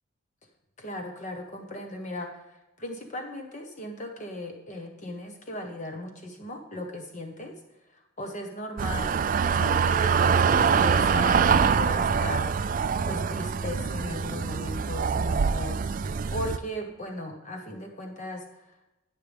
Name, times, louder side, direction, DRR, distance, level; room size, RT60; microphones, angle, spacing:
voice 1, 0.8-2.4 2.8-7.5 7.9-9.2 9.5-12.5 13.0-15.8 16.3-18.4, left 1 dB, 35° left, 3 dB, 1.3 m, -37 dB
sound 1, 8.8-16.6, right 6 dB, 40° right, 0.3 m, -24 dB
19.0 x 6.7 x 3.6 m, 0.97 s
head